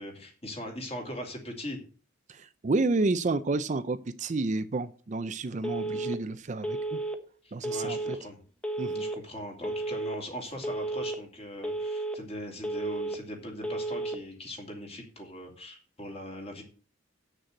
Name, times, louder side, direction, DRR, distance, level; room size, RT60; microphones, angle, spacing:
voice 1, 0.0-1.8 7.4-8.4 9.0-16.6, left 1 dB, 30° left, 2 dB, 2.6 m, -40 dB
voice 2, 2.3-7.0 7.5-8.0 8.8-9.0, right 3 dB, 35° right, 12 dB, 0.5 m, -30 dB
Telephone, 5.6-6.2 6.6-7.2 7.6-8.2 8.6-9.2 9.6-10.2 10.6-11.2 11.6-12.2 12.6-13.2 13.6-14.2, right 2 dB, 5° left, 1.0 m, -32 dB
7.5 x 6.5 x 7.8 m, 0.39 s
head